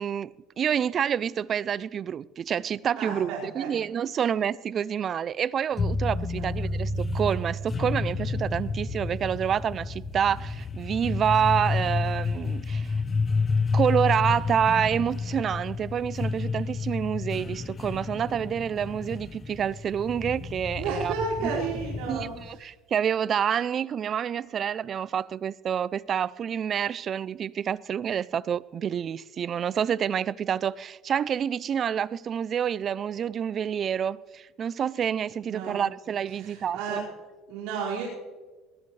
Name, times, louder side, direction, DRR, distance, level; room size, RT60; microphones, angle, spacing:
voice 1, 0.0-12.9 13.7-21.1 22.1-37.0, right 8 dB, 35° right, 0.4 m, -28 dB
voice 2, 3.0-3.7 6.4-6.5 20.8-22.6 35.4-35.9 36.3-37.0 37.5-38.0, right 5 dB, 70° right, 5.0 m, -32 dB
sound 1, 5.8-22.6, left 4 dB, 25° left, 0.8 m, -30 dB
20.5 x 20.0 x 3.2 m
cardioid pair, 135°, 0 cm